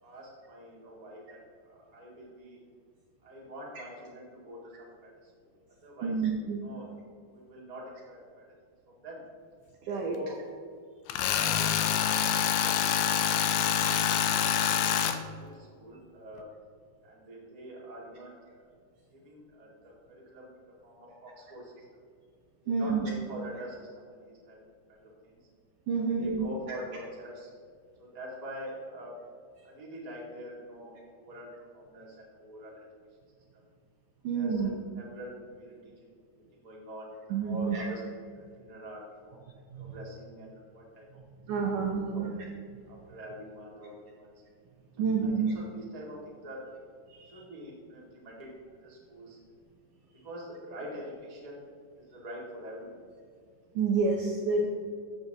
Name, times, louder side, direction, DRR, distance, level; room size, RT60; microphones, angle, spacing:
voice 1, 0.0-2.6 3.2-5.5 5.8-6.3 6.6-6.9 7.3-8.4 8.9-9.2 10.0-10.4 11.1-15.0 15.4-16.5 17.0-18.6 19.1-20.5 20.8-21.8 22.6-25.5 25.9-27.5 28.0-29.2 29.6-32.8 33.5-33.6 34.3-35.9 36.3-38.0 38.3-39.4 39.7-41.1 41.9-42.4 42.9-44.3 44.9-46.7 47.3-48.5 48.8-49.4 50.2-51.6 51.9-53.0, equal, 15° right, -5 dB, 1.3 m, -45 dB
voice 2, 6.0-6.6 9.8-10.2 22.7-23.1 25.9-26.5 34.2-34.7 37.3-37.9 39.7-39.9 41.5-42.4 45.0-45.5 47.1-47.4 53.8-54.7, right 5 dB, 75° right, 0 dB, 2.0 m, -29 dB
Tools, 11.1-15.2, left 9 dB, 85° left, 1.8 m, -26 dB
13.5 x 6.7 x 3.0 m, 2.2 s
omnidirectional pair, 4.4 m